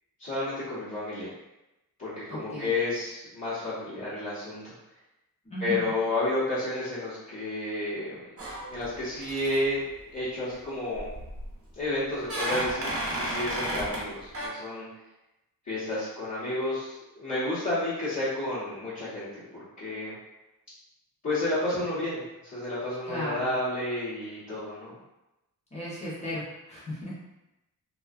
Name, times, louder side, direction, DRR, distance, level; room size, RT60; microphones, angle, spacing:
voice 1, 0.2-1.3 2.0-4.7 5.6-8.3 8.7-9.8 10.1-11.1 11.8-14.9 15.7-20.2 21.2-22.2 22.5-25.0, left 2 dB, 45° left, -15 dB, 1.0 m, -31 dB
voice 2, 2.3-2.7 5.4-5.9 23.1-23.6 25.7-27.1, left 1 dB, 20° left, -8 dB, 0.8 m, -36 dB
sound 1, 8.4-9.0 9.2-9.6 11.0-11.5 12.2-14.1 14.3-14.5, right 1 dB, 40° right, 0.6 m, -32 dB
2.6 x 2.3 x 2.4 m, 0.95 s
wide cardioid pair, 165°, 37 cm